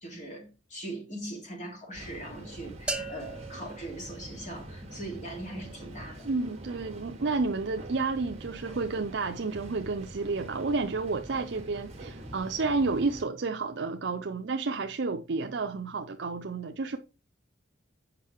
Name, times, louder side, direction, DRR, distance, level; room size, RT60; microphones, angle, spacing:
voice 1, 0.0-6.3, right 1 dB, 35° left, 2.8 m, -40 dB
sound 1, 1.9-13.2, right 1 dB, 30° right, 1.9 m, -45 dB
sound 2, 2.9-4.9, right 3 dB, 5° right, 0.6 m, -38 dB
voice 2, 6.2-17.0, right 3 dB, 60° right, 0.5 m, -31 dB
7.7 x 5.5 x 4.5 m
head